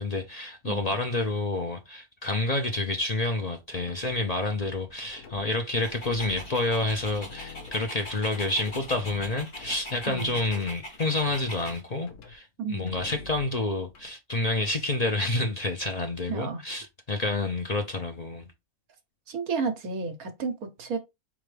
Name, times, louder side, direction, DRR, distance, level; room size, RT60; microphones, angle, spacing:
voice 1, 0.0-18.5, left 2 dB, 55° left, 0.4 m, -29 dB
sound 1, 3.8-5.4 5.9-10.8 11.1-11.7 12.1-12.3 12.8-14.1, left 4 dB, 80° left, 1.5 m, -46 dB
Dog, 5.8-11.8, left 1 dB, 35° left, 2.6 m, -42 dB
voice 2, 12.6-12.9 16.3-16.6 19.3-21.0, right 4 dB, 70° right, 1.5 m, -32 dB
4.4 x 3.7 x 3.3 m
omnidirectional pair, 1.6 m